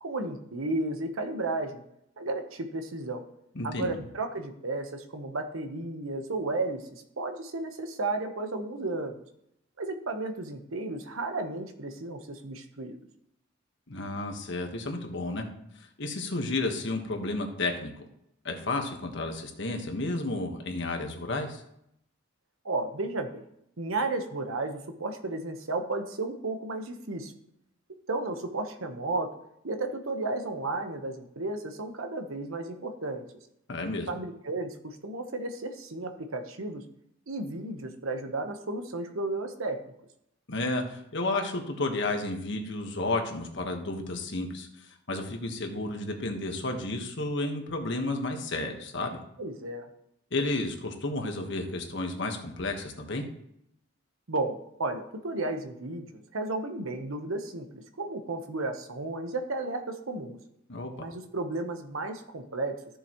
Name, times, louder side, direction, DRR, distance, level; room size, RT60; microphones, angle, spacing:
voice 1, 0.0-1.8 2.2-3.2 3.6-9.2 9.8-13.0 22.6-23.4 23.8-27.3 28.1-29.3 29.6-33.2 34.1-36.8 37.3-39.8 49.4-49.9 54.3-60.4 61.0-62.8, right 2 dB, 80° right, 6 dB, 1.1 m, -33 dB
voice 2, 3.5-4.0 13.9-15.4 15.8-17.9 18.4-21.6 33.7-34.1 40.5-49.2 50.3-53.2 60.7-60.9, left 2 dB, 60° left, 4 dB, 1.4 m, -32 dB
14.0 x 6.9 x 3.1 m, 0.77 s
head